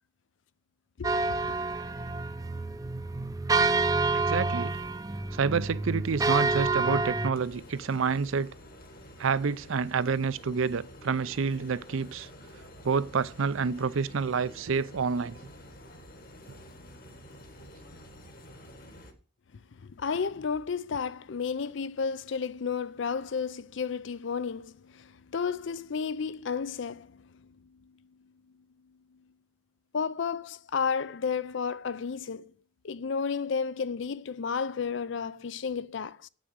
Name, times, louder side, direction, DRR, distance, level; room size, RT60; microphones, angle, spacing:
sound 1, 1.0-7.3, right 3 dB, 15° right, 0.5 m, -28 dB
voice 1, 4.1-4.7 5.3-8.5 9.2-12.3 12.8-15.4, right 5 dB, 80° right, 0.5 m, -28 dB
sound 2, 7.3-19.1, equal, 45° left, 1.5 m, -49 dB
voice 2, 19.7-27.5 29.9-32.5 32.8-36.3, left 6 dB, 65° left, 0.5 m, -32 dB
8.1 x 6.2 x 7.8 m
head